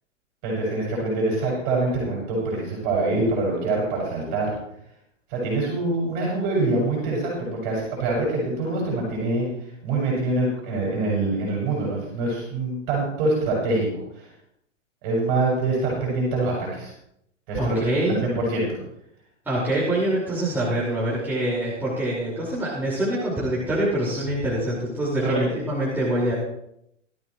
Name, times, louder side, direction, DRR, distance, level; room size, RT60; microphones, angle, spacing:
voice 1, 0.4-4.5 5.3-9.5 9.8-14.3 15.0-16.9 17.5-17.8 18.1-18.8 25.2-25.5, right 2 dB, 40° right, -3 dB, 7.2 m, -25 dB
voice 2, 17.5-18.2 19.5-26.3, right 1 dB, 5° right, -8 dB, 5.2 m, -25 dB
19.5 x 13.5 x 3.3 m, 0.76 s
figure-of-eight pair, 110°, 38 cm